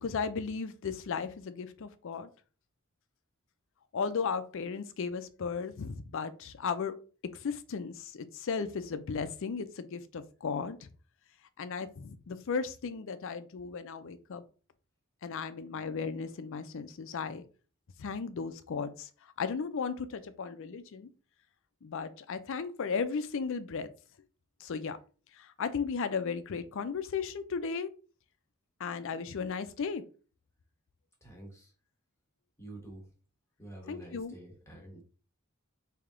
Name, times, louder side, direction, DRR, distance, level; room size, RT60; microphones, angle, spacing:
voice 1, 0.0-2.3 3.9-7.0 7.3-10.9 11.6-14.4 15.2-17.4 18.0-19.1 19.4-21.1 21.8-23.9 24.6-25.0 25.4-27.9 28.8-30.0 33.9-34.3, left 5 dB, 60° left, 0.5 m, -35 dB
voice 2, 31.2-31.7 32.6-33.1 33.6-35.0, right 1 dB, 15° left, 1.2 m, -48 dB
3.4 x 2.8 x 3.6 m
head